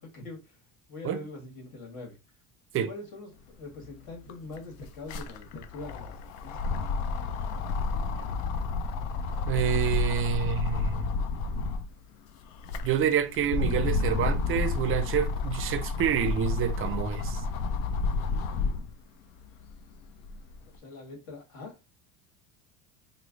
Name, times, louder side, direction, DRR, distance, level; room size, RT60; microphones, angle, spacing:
voice 1, 0.0-0.6 0.9-2.2 2.9-6.9 20.8-21.7, left 2 dB, 65° left, 1.6 m, -43 dB
sound 1, 3.8-3.9 4.1-11.9 12.4-18.9 19.4-20.6, left 4 dB, 80° left, 0.6 m, -30 dB
voice 2, 9.5-11.1 12.8-17.4, right 9 dB, 35° right, 0.4 m, -28 dB
3.1 x 2.0 x 3.6 m
supercardioid pair, 100°, 38 cm